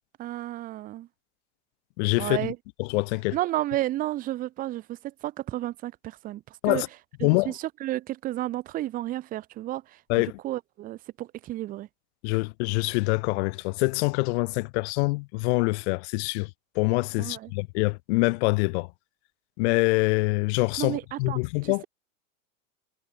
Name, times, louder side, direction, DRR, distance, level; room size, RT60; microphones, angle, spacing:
voice 1, 0.2-1.1 2.2-2.6 3.3-6.8 7.2-9.8 10.4-11.9 17.2-17.5 20.8-21.9, right 15 dB, 20° right, 0.5 m, -32 dB
voice 2, 2.0-2.5 2.8-3.4 6.6-6.9 7.2-7.5 10.1-10.4 12.2-16.5 16.8-18.9 19.6-21.9, left 27 dB, 55° left, 0.6 m, -25 dB
supercardioid pair, 135°, 41 cm